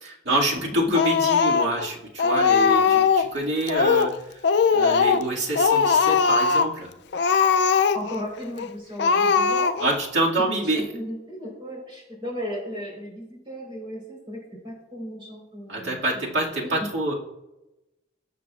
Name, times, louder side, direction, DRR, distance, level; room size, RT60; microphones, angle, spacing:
voice 1, 0.0-4.1 4.7-6.9 9.8-10.9 15.7-17.1, right 1 dB, 60° right, -3 dB, 2.2 m, -26 dB
Speech, 0.9-1.9 2.2-3.3 3.7-4.2 4.4-5.3 5.5-6.7 7.1-8.2 8.6-8.7 9.0-10.0, left 5 dB, 55° left, 0.4 m, -20 dB
voice 2, 7.9-9.9 10.5-16.3 16.6-16.9, equal, 25° right, -3 dB, 4.2 m, -36 dB
20.0 x 6.8 x 2.4 m, 0.95 s
head